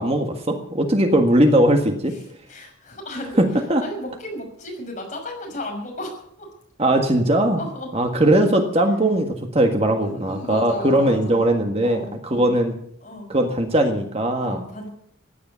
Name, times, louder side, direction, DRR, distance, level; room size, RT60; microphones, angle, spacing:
voice 1, 0.0-2.1 3.4-3.8 6.8-7.6 7.9-12.7 13.3-14.6, right 1 dB, 30° right, 4 dB, 1.7 m, -19 dB
voice 2, 2.5-3.4 3.8-6.5 7.6-7.9 10.0-11.4 11.7-12.5 13.0-13.3 14.4-14.9, left 1 dB, 40° left, 1 dB, 6.0 m, -34 dB
15.5 x 10.0 x 8.4 m, 0.67 s
head